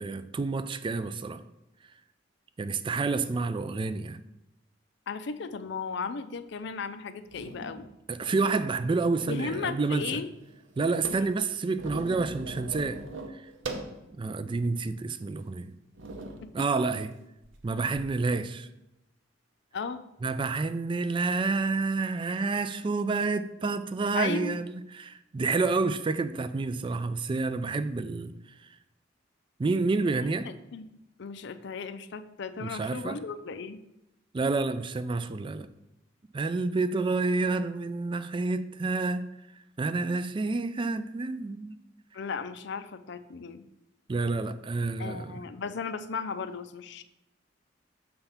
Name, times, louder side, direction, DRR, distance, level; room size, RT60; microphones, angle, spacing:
voice 1, 0.0-1.4 2.6-4.2 8.1-10.0 10.8-13.0 13.3-13.4 14.2-15.7 16.5-17.1 17.6-18.7 20.2-28.3 29.6-30.5 32.6-33.2 34.3-35.7 36.3-39.3 39.8-41.8 44.1-45.4, right 3 dB, 25° right, 0.3 m, -29 dB
voice 2, 5.1-7.9 9.3-10.3 16.4-16.5 19.7-20.0 24.1-24.6 30.4-30.8 31.2-33.8 42.1-43.6 45.0-47.0, left 5 dB, 65° left, 0.5 m, -35 dB
sound 1, 6.6-6.7 7.3-7.9 8.5-9.6 9.9-10.0 10.2-14.0 14.5-14.6 15.3-15.5 15.9-16.5 17.4-18.0, right 2 dB, 70° right, 0.7 m, -41 dB
6.8 x 3.5 x 5.6 m
head